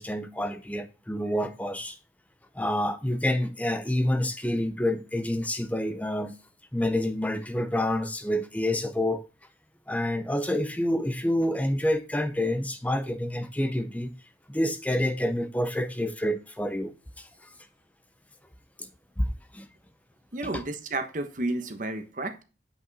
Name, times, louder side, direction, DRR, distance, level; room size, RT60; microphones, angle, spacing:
voice 1, 0.0-2.0 2.5-6.3 6.7-9.3 9.9-14.1 14.5-17.3 18.8-18.9 19.2-19.7 20.5-20.6, left 1 dB, 10° left, 0.7 m, -28 dB
voice 2, 20.3-22.4, right 2 dB, 45° right, 1.2 m, -31 dB
8.6 x 5.2 x 4.1 m
head